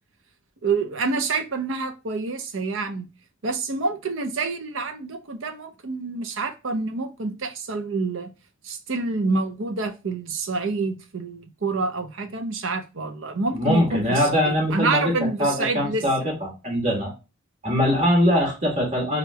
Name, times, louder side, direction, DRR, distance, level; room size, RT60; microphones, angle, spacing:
voice 1, 0.6-3.1 3.4-8.3 8.6-16.3, right 3 dB, 85° right, 0.7 m, -27 dB
voice 2, 13.5-15.1 15.4-17.1 17.6-19.2, equal, 35° right, 1.7 m, -22 dB
3.4 x 2.4 x 3.1 m
head